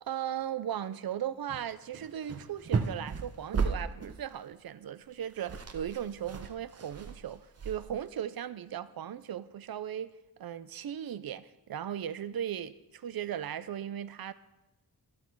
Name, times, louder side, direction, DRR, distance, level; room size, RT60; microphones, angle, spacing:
voice 1, 0.0-10.1 10.4-14.3, right 10 dB, 70° right, 0.6 m, -37 dB
sound 1, 1.5-1.7 1.9-4.3 5.1-5.2 5.3-8.1, right 5 dB, 40° right, 0.9 m, -35 dB
12.5 x 12.0 x 4.7 m
wide cardioid pair, 170°, 37 cm